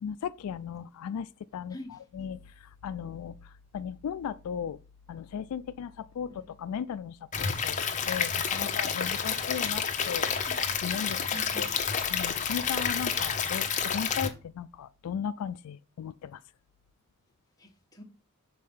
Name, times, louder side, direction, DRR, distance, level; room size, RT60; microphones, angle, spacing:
voice 1, 0.0-1.3 1.5-1.7 2.2-2.4 2.8-3.3 3.7-4.8 5.1-5.9 6.2-6.3 6.6-7.1 7.4-7.8 8.1-10.3 10.8-11.2 11.6-11.7 12.1-13.7 13.9-16.3, left 7 dB, 85° left, 0.3 m, -36 dB
voice 2, 1.7-2.0 6.3-6.5 8.5-8.8 11.2-11.7 13.3-13.4 17.6-18.0, equal, 15° left, 1.4 m, -46 dB
Stream / Liquid, 7.3-14.3, left 6 dB, 35° left, 0.9 m, -29 dB
6.6 x 4.2 x 5.4 m
head